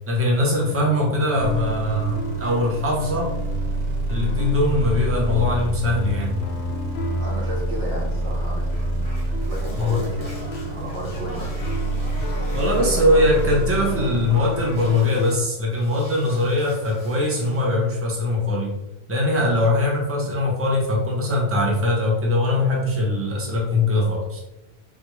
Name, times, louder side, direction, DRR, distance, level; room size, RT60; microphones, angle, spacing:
voice 1, 0.1-3.3 4.1-6.4 9.8-10.0 12.5-18.7 19.1-24.4, left 2 dB, 15° right, -2 dB, 0.6 m, -21 dB
sound 1, 0.5-15.4, right 2 dB, 70° left, 0.8 m, -31 dB
sound 2, 1.4-14.9, right 1 dB, 60° right, 0.7 m, -29 dB
voice 2, 7.2-9.1 9.4-10.3 10.7-11.5 12.8-13.4, equal, 80° right, -3 dB, 1.3 m, -34 dB
sound 3, 8.7-15.4 15.7-17.7, right 1 dB, 35° left, 0.8 m, -42 dB
3.4 x 2.3 x 3.0 m, 0.95 s
omnidirectional pair, 1.1 m